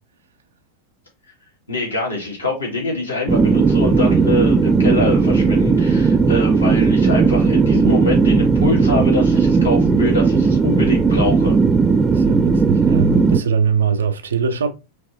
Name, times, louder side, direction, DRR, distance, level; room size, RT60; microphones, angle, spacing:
voice 1, 1.7-11.5, left 2 dB, 80° left, 1.9 m, -24 dB
sound 1, 3.3-13.4, right 4 dB, 15° right, 0.3 m, -16 dB
voice 2, 12.1-14.7, right 6 dB, 65° right, 0.5 m, -21 dB
4.5 x 2.9 x 2.6 m
figure-of-eight pair, 90°, 0 cm